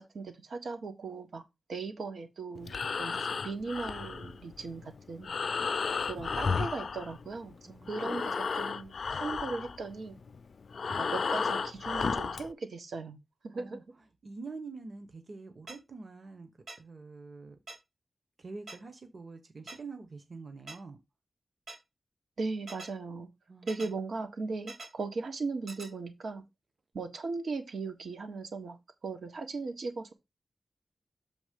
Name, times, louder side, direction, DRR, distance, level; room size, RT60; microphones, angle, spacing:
voice 1, 0.0-1.4 1.7-5.4 6.1-7.5 7.9-10.2 10.9-13.2 13.4-13.8 22.4-23.3 23.7-26.4 26.9-28.8 29.0-30.1, right 4 dB, 85° right, 1.4 m, -38 dB
Breathing, 2.5-7.5 7.8-12.5, left 5 dB, 70° left, 0.3 m, -33 dB
voice 2, 7.6-8.2 13.5-13.8 14.2-16.5 16.8-17.6 18.4-21.0 23.5-23.9, right 4 dB, 50° right, 1.0 m, -46 dB
sound 1, 15.7-15.8 16.7-16.8 17.7-17.8 18.7-18.8 19.7-19.8 20.7-20.8 21.7-21.8 22.7-22.9 23.7-23.9 24.7-24.9 25.7-25.9, right 2 dB, 65° right, 2.6 m, -43 dB
7.0 x 3.5 x 5.1 m
wide cardioid pair, 120°, 0 cm